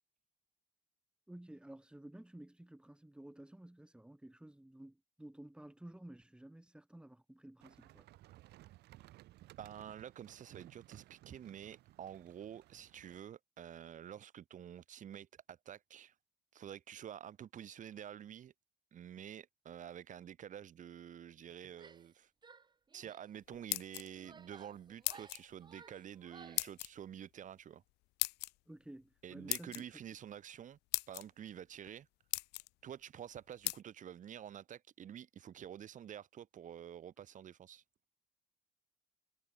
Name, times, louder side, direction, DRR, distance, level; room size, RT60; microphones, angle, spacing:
voice 1, 1.3-8.1 28.7-29.8, right 1 dB, 5° right, 2.2 m, -53 dB
sound 1, 7.6-13.2, right 16 dB, 80° right, 3.4 m, -59 dB
voice 2, 9.6-16.1 16.5-18.5 18.9-22.3 22.9-27.8 29.2-30.8 31.1-32.1 32.8-37.8, right 9 dB, 50° right, 1.7 m, -49 dB
Female speech woman speaking / Yell, 21.7-22.1 22.4-23.3 23.9-26.7, right 5 dB, 25° right, 1.4 m, -58 dB
sound 2, 23.5-24.3 25.0-25.4 26.6-26.9 28.2-28.5 29.5-29.8 30.5-30.6 30.9-31.2 31.9-32.0 32.3-32.7 33.6-33.8, left 21 dB, 85° left, 0.5 m, -37 dB
cardioid pair, 110°, 17 cm